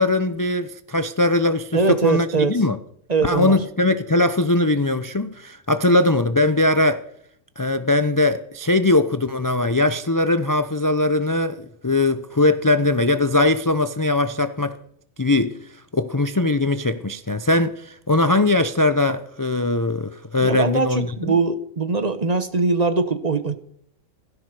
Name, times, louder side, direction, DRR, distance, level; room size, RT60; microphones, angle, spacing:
voice 1, 0.0-2.8 3.2-7.0 7.6-14.8 15.2-15.6 15.9-21.4, left 2 dB, 25° left, 0.5 m, -20 dB
voice 2, 1.7-2.6 3.1-3.6 20.4-23.5, right 4 dB, 35° right, 1.0 m, -21 dB
16.5 x 15.0 x 4.9 m
omnidirectional pair, 1.4 m